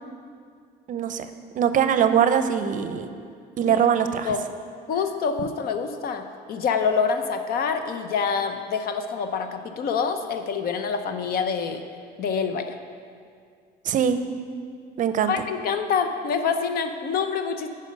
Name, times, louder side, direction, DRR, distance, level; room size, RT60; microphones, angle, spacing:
voice 1, 0.9-1.3 1.6-3.1 3.6-4.3 13.8-14.2 15.0-15.3, right 8 dB, 50° right, 10 dB, 0.5 m, -22 dB
voice 2, 4.9-11.8 12.2-12.8 15.2-17.7, left 6 dB, 65° left, 8 dB, 0.7 m, -26 dB
9.3 x 5.3 x 5.3 m, 2.2 s
cardioid pair, 110°, 17 cm